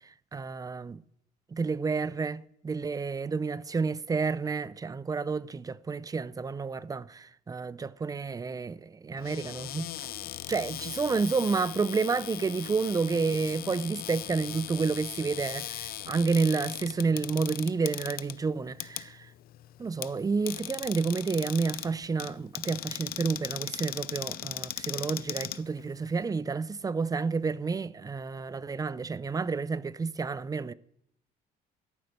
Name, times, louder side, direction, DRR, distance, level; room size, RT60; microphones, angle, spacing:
voice 1, 0.3-1.0 1.5-9.9 10.5-19.3 19.8-30.7, right 4 dB, 20° right, 0.6 m, -30 dB
Cupboard open or close, 9.2-26.2, left 13 dB, 65° left, 0.7 m, -39 dB
14.0 x 7.9 x 9.4 m
cardioid pair, 110°, 17 cm